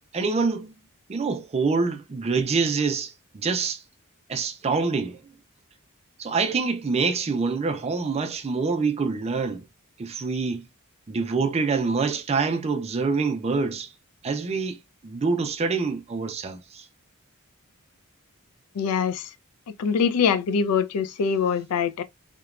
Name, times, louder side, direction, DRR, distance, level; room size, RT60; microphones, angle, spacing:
voice 1, 0.1-0.7 1.1-3.8 4.3-5.2 6.2-9.6 10.0-10.6 11.1-13.9 14.2-16.8, right 4 dB, 30° right, 0.4 m, -26 dB
voice 2, 18.8-19.3 19.8-22.0, left 6 dB, 85° left, 0.4 m, -23 dB
2.9 x 2.2 x 2.3 m
head